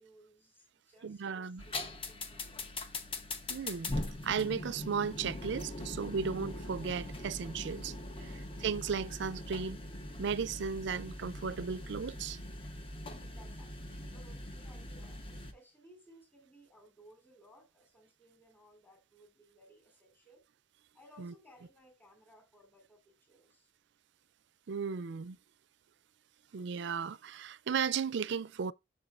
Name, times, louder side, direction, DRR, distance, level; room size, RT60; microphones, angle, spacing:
voice 1, 0.0-2.7 13.0-20.4 20.9-23.7, equal, 10° left, 2.7 m, -61 dB
voice 2, 1.0-1.6 3.5-9.8 10.2-12.4 21.2-21.3 24.7-25.4 26.5-28.7, right 6 dB, 65° right, 0.4 m, -35 dB
sound 1, 1.6-15.5, left 1 dB, 30° left, 0.9 m, -42 dB
7.4 x 6.6 x 2.5 m
head